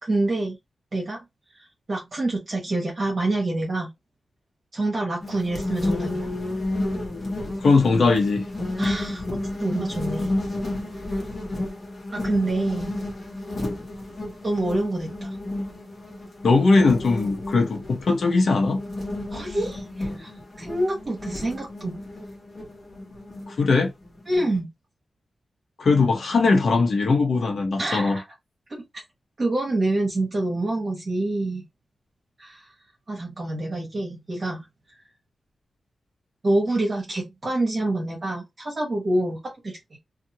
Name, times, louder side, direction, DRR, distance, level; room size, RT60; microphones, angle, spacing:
voice 1, 0.0-0.6 0.9-1.2 1.9-3.9 4.7-6.3 8.8-10.3 12.1-13.0 14.4-15.4 19.3-20.3 20.6-22.0 24.2-24.7 27.8-28.2 28.7-28.8 29.4-31.6 32.4-32.6 33.1-34.7 36.4-40.0, right 2 dB, 40° right, 1.2 m, -26 dB
sound 1, 5.2-24.6, left 1 dB, 40° left, 1.2 m, -31 dB
voice 2, 7.6-8.4 16.4-18.8 23.5-23.9 25.8-28.2, left 3 dB, 65° left, 0.8 m, -20 dB
2.7 x 2.5 x 2.8 m
wide cardioid pair, 105°, 0 cm